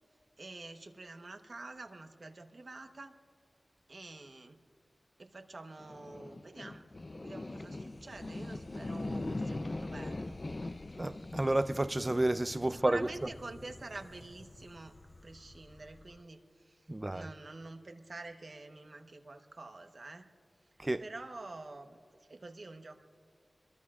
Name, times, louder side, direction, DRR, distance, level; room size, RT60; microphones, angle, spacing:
voice 1, 0.4-3.1 3.9-4.6 5.2-6.8 7.2-10.4 12.7-15.0 15.2-20.3 21.0-22.0 22.3-22.9, right 2 dB, 55° right, 1.0 m, -47 dB
sound 1, 5.8-16.2, left 2 dB, 45° left, 0.5 m, -42 dB
voice 2, 11.0-13.1 16.9-17.3 20.8-21.0, right 1 dB, 25° right, 0.4 m, -30 dB
26.0 x 22.5 x 2.4 m
wide cardioid pair, 80°, 0 cm